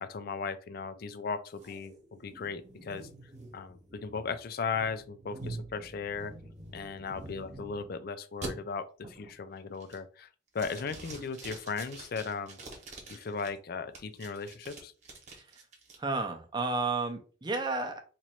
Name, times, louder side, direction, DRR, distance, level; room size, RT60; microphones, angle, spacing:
voice 1, 0.0-3.1 3.5-6.3 6.7-10.3 10.5-12.6 13.1-14.9, left 5 dB, 50° left, 12 dB, 0.4 m, -37 dB
sound 1, 1.6-7.9 8.4-8.5 9.0-9.4 9.8-10.2 10.6-13.5 13.9-16.0, right 2 dB, 40° right, 1.1 m, -46 dB
voice 2, 16.0-18.0, right 3 dB, 25° right, 5 dB, 0.6 m, -32 dB
2.9 x 2.5 x 4.4 m, 0.38 s
head